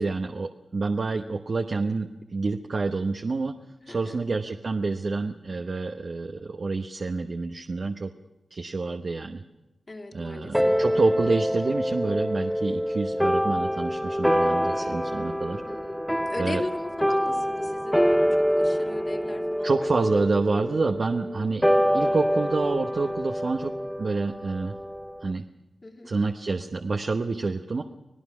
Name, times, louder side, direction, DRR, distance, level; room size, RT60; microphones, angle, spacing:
voice 1, 0.0-3.6 3.9-8.1 8.5-9.4 10.1-15.6 16.4-16.6 19.6-21.6 21.9-24.8 25.2-25.4 26.1-27.8, right 3 dB, 65° right, 5 dB, 1.0 m, -28 dB
voice 2, 3.9-4.2 9.9-10.8 15.7-20.3 25.8-26.2, left 2 dB, 45° left, 2 dB, 2.7 m, -38 dB
sound 1, 10.5-25.3, equal, ahead, 0.7 m, -26 dB
26.0 x 17.5 x 6.1 m, 1.0 s
cardioid pair, 45°, 0 cm